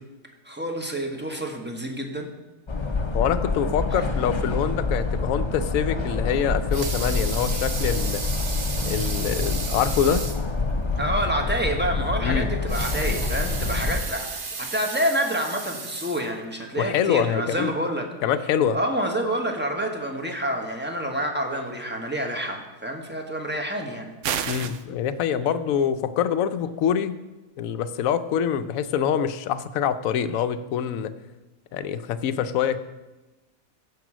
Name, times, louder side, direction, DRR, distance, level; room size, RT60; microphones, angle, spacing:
voice 1, 0.4-2.3 3.9-4.1 8.4-8.6 11.0-14.3 14.6-18.1 18.7-24.1, right 1 dB, 10° right, 2 dB, 1.2 m, -28 dB
sound 1, 2.7-14.0, left 3 dB, 25° left, 0.8 m, -27 dB
voice 2, 3.1-8.2 8.8-10.2 12.2-12.5 16.8-17.7 18.2-18.8 24.5-27.2 27.6-31.1 31.7-32.8, left 8 dB, 70° left, 11 dB, 1.0 m, -25 dB
Water tap faucet / Sink (filling or washing) / Liquid, 6.5-10.5 10.9-11.0 11.4-11.5 12.5-16.7 17.3-17.4, right 4 dB, 40° right, 1.1 m, -34 dB
sound 2, 24.2-24.8, right 9 dB, 65° right, 0.9 m, -28 dB
15.0 x 5.4 x 6.2 m, 1.1 s
omnidirectional pair, 1.5 m